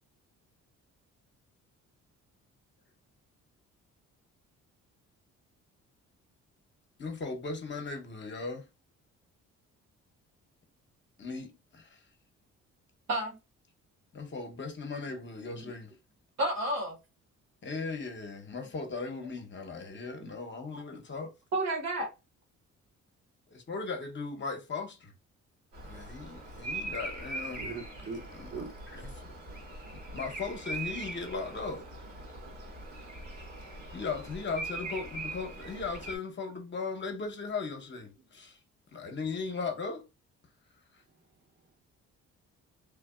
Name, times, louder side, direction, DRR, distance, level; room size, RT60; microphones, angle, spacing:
voice 1, 7.0-8.6 11.2-12.0 14.1-15.9 17.6-21.3 23.5-25.1 25.8-27.7 28.3-28.6 29.0-29.1 29.9-31.9 33.9-38.6 38.9-40.1, left 4 dB, 40° left, 0.8 m, -37 dB
voice 2, 16.4-17.0 20.2-20.3 20.7-20.8 21.5-22.1, right 1 dB, 60° right, 1.2 m, -31 dB
Bird vocalization bird call bird song, 25.7-36.2, right 2 dB, 85° right, 1.7 m, -41 dB
voice 3, 27.5-28.2 28.5-29.4 41.1-41.7, right 4 dB, 35° right, 0.7 m, -43 dB
3.3 x 2.0 x 2.3 m
cardioid pair, 90°, 30 cm